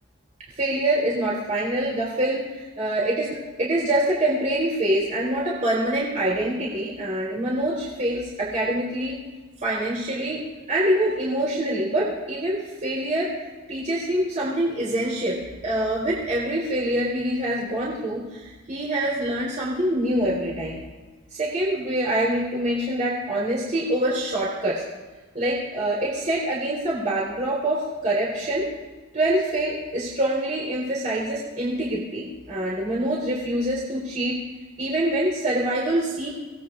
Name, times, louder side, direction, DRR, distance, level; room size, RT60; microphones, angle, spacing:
voice 1, 0.6-9.2 9.6-10.4 10.7-13.3 13.7-20.8 21.3-24.8 25.3-28.7 29.1-34.4 34.8-36.3, right 1 dB, 40° right, -5 dB, 4.2 m, -25 dB
26.5 x 18.0 x 2.6 m, 1.3 s
head